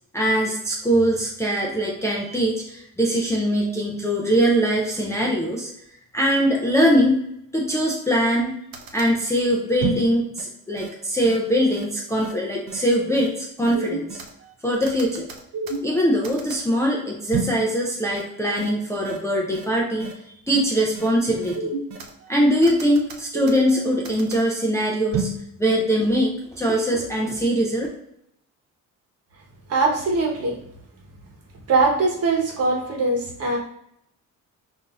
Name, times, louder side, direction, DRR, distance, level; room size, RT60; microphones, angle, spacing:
voice 1, 0.1-5.7 6.1-7.2 7.5-8.6 8.9-14.2 14.6-15.3 15.8-20.1 20.5-21.7 22.3-25.3 25.6-27.9, equal, 10° left, -3 dB, 0.5 m, -22 dB
sound 1, 8.4-8.5 8.7-9.1 9.8-10.1 10.4-10.5 10.8-10.9 11.2-11.4 11.7-11.8 12.2-12.3 12.7-12.8 13.1-13.3 13.6-14.3 14.8-16.0 16.2-16.6 17.3-17.6 18.2-18.3 18.6-18.7 19.0-19.2 19.5-19.7 20.0-20.1 20.5-20.6 21.0-21.1 21.4-22.1 22.6-23.7 24.1-24.4 25.1-25.4 25.7-25.8, right 4 dB, 90° right, 0.8 m, -30 dB
voice 2, 29.7-30.6 31.7-33.6, right 3 dB, 45° right, -1 dB, 1.1 m, -21 dB
5.7 x 2.7 x 2.4 m, 0.75 s
cardioid pair, 155°, 33 cm